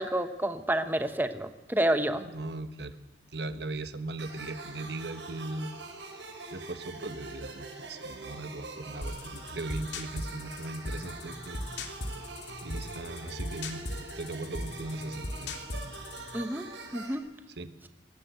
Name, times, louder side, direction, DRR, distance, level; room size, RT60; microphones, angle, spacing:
voice 1, 0.0-2.2 16.3-16.7 16.9-17.2, right 1 dB, 10° right, 9 dB, 1.0 m, -29 dB
voice 2, 2.3-3.0 3.3-5.8 6.5-11.6 12.6-15.6 17.6-17.7, right 2 dB, 65° right, 11 dB, 1.4 m, -38 dB
sound 1, 4.2-17.1, right 3 dB, 85° right, 5.6 m, -44 dB
sound 2, 9.0-16.4, left 1 dB, 75° left, 2.8 m, -39 dB
23.0 x 19.0 x 8.1 m, 1.0 s
head